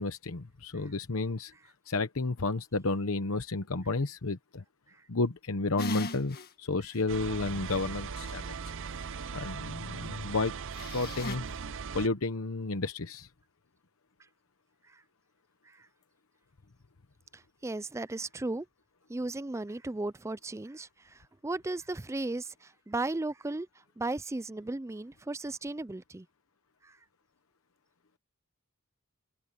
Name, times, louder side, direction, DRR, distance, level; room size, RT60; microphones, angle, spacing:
voice 1, 0.0-1.5 1.9-4.6 5.1-8.5 9.3-10.5 10.9-11.5 11.9-13.3, left 3 dB, 70° left, 1.0 m, -32 dB
sound 1, 5.8-6.5 6.9-7.0 10.7-11.4, left 2 dB, 45° left, 1.7 m, -37 dB
sound 2, 7.1-12.1, right 6 dB, 60° right, 0.6 m, -39 dB
voice 2, 17.3-18.7 19.1-23.7 24.0-26.3 26.8-27.0, right 2 dB, 15° right, 0.4 m, -36 dB
head